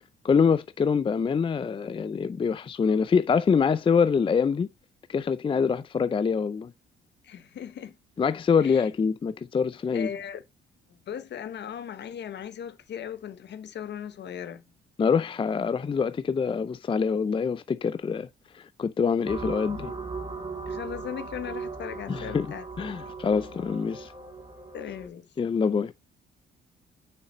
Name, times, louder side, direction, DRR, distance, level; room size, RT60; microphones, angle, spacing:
voice 1, 0.2-4.7 5.1-6.7 8.2-10.1 15.0-18.3 18.5-19.9 22.1-22.5 22.8-24.1 25.4-25.9, left 6 dB, 25° left, 0.4 m, -25 dB
voice 2, 7.2-7.9 8.6-8.9 9.9-10.4 10.9-14.6 20.7-22.7 24.7-25.3, left 8 dB, 60° left, 1.0 m, -38 dB
sound 1, 19.2-25.1, right 4 dB, 25° right, 2.8 m, -38 dB
6.3 x 5.8 x 3.0 m
cardioid pair, 90°, 20 cm